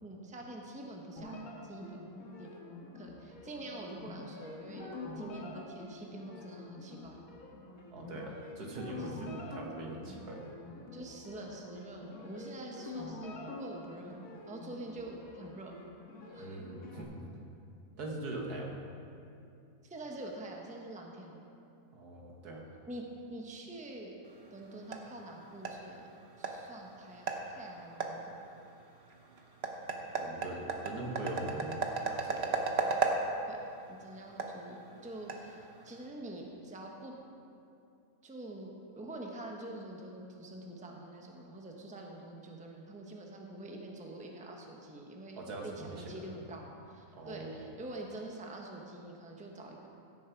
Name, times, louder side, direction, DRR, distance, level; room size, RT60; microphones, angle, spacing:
voice 1, 0.0-2.0 2.4-2.5 2.9-7.2 10.9-14.2 14.5-15.7 16.3-16.6 19.8-21.4 22.9-23.0 23.3-24.1 24.5-26.0 26.4-28.5 33.5-33.6 33.9-37.1 38.2-38.7 39.0-49.9, right 1 dB, 5° right, 0 dB, 0.8 m, -46 dB
sound 1, 1.2-17.0, left 2 dB, 60° left, 1.7 m, -46 dB
voice 2, 7.9-10.4 16.4-17.1 18.0-18.8 21.9-22.7 30.1-32.7 45.4-46.3 47.1-47.6, right 2 dB, 80° right, 0 dB, 2.0 m, -42 dB
sound 2, 24.3-36.1, right 4 dB, 50° right, 1.0 m, -37 dB
15.5 x 7.5 x 4.6 m, 2.6 s
omnidirectional pair, 1.7 m